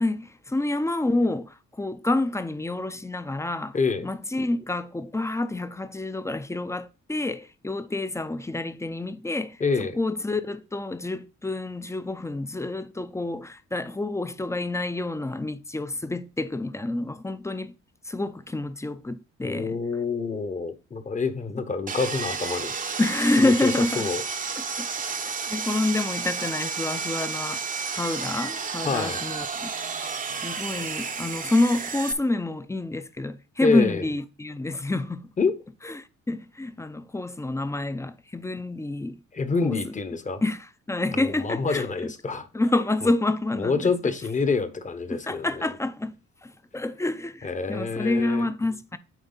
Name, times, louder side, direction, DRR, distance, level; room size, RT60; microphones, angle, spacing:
voice 1, 0.0-9.6 9.9-17.7 18.0-19.8 23.0-24.1 24.6-29.7 30.3-35.3 35.8-39.2 39.6-39.9 40.4-42.1 42.5-44.0 45.1-46.2 46.4-49.0, left 2 dB, 10° left, 0.6 m, -28 dB
voice 2, 3.7-4.1 9.6-10.0 19.4-22.7 23.4-24.2 28.8-29.2 33.6-34.0 35.4-35.5 39.3-40.4 41.1-42.5 43.0-43.1 43.6-45.7 47.4-48.5, left 4 dB, 25° left, 0.9 m, -27 dB
Sawing, 21.9-32.1, right 5 dB, 25° right, 0.7 m, -31 dB
9.1 x 3.5 x 3.9 m
cardioid pair, 90°, 30 cm